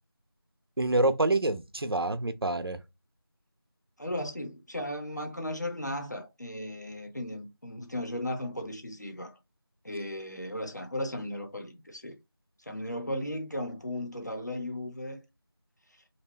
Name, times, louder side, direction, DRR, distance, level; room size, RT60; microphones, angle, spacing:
voice 1, 0.8-2.8, right 2 dB, 80° right, 0.5 m, -26 dB
voice 2, 4.0-9.4 9.8-12.2 12.7-15.2, left 1 dB, 50° left, 0.7 m, -36 dB
2.5 x 2.2 x 3.4 m
figure-of-eight pair, 180°, 13 cm